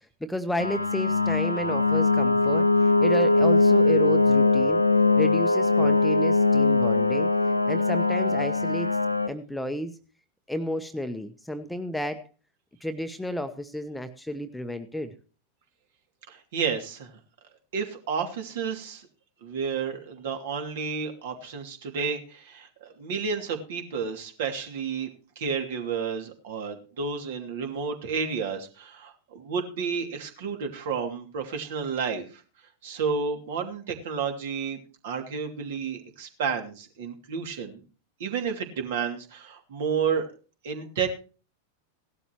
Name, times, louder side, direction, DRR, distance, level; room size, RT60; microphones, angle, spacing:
voice 1, 0.2-4.8 5.2-7.3 7.7-8.9 9.3-9.9 10.5-12.2 12.8-15.1, equal, 5° left, 9 dB, 1.0 m, -32 dB
sound 1, 0.6-9.3, left 3 dB, 85° left, 0.7 m, -21 dB
voice 2, 16.3-17.2 17.7-19.1 19.4-25.1 25.4-32.4 32.8-34.8 35.0-37.8 38.2-40.3 40.6-41.1, right 6 dB, 55° right, 5 dB, 2.7 m, -31 dB
17.0 x 12.0 x 3.1 m, 0.36 s
figure-of-eight pair, 90°, 0 cm